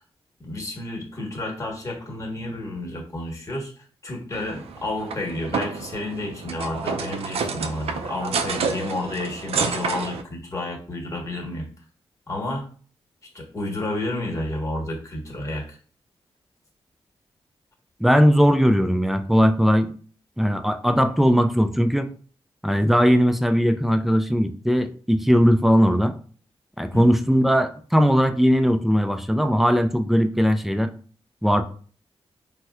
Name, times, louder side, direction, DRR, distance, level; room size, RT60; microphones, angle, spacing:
voice 1, 0.4-3.7 4.0-11.7 12.3-12.7 13.3-15.8 26.9-27.1, left 2 dB, 30° left, -1 dB, 1.2 m, -31 dB
sound 1, 4.3-10.2, right 5 dB, 75° right, 0.4 m, -29 dB
voice 2, 18.0-19.9 20.4-22.1 22.6-26.1 26.8-30.9 31.4-31.6, equal, ahead, 8 dB, 0.4 m, -19 dB
4.1 x 2.1 x 2.3 m, 0.43 s
cardioid pair, 60°, 10 cm